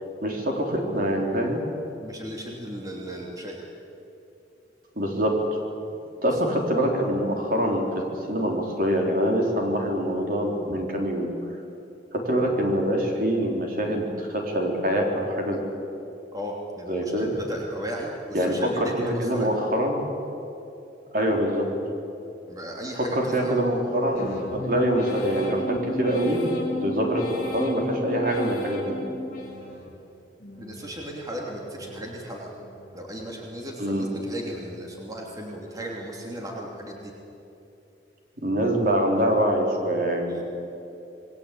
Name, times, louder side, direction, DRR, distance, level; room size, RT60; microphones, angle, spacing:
voice 1, 0.2-1.6 5.0-5.4 6.2-7.9 8.3-11.3 12.1-15.6 16.9-17.3 18.3-20.0 21.1-21.7 23.1-28.9 33.8-34.1 38.4-40.4, equal, 50° right, 1 dB, 4.2 m, -24 dB
voice 2, 2.0-3.6 6.3-6.4 16.3-19.5 22.5-23.6 30.6-32.5 32.9-37.1 40.3-40.4, equal, 20° right, -2 dB, 3.0 m, -36 dB
sound 1, 24.1-30.0 30.4-31.0 31.5-32.1 32.6-33.2 33.7-34.3 34.8-35.3, equal, 45° left, 7.7 m, -35 dB
27.5 x 21.5 x 8.7 m, 2.8 s
head